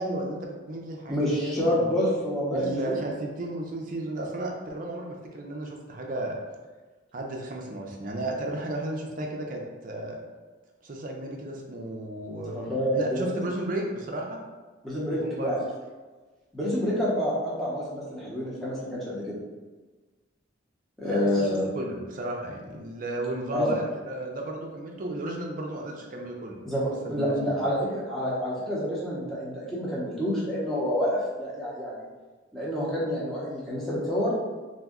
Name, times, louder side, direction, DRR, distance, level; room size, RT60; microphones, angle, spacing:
voice 1, 0.0-2.0 2.5-6.4 7.1-10.2 10.8-14.4 15.1-15.6 21.0-21.5 21.7-26.6 27.2-27.5, right 1 dB, 45° right, 0 dB, 0.4 m, -34 dB
voice 2, 1.1-2.9 12.4-13.3 14.8-15.6 16.5-19.4 21.0-21.6 23.5-23.7 26.7-32.1 32.5-34.3, equal, ahead, -8 dB, 0.7 m, -28 dB
2.6 x 2.2 x 3.6 m, 1.3 s
head